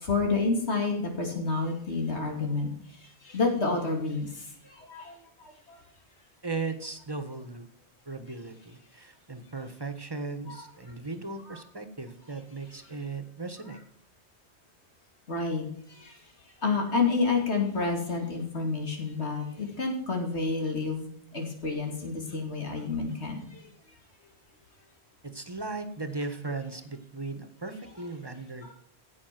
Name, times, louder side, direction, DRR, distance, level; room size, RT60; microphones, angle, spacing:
voice 1, 0.0-2.7 3.2-4.3 4.7-5.1 5.7-5.8 10.5-10.6 15.3-15.6 16.0-16.1 16.6-21.1 21.3-23.6 28.6-28.7, left 4 dB, 85° left, 2 dB, 2.9 m, -29 dB
voice 2, 6.4-7.7 8.1-13.8 25.2-28.7, right 3 dB, 20° right, 9 dB, 1.4 m, -37 dB
16.0 x 6.1 x 6.0 m, 0.63 s
omnidirectional pair, 1.1 m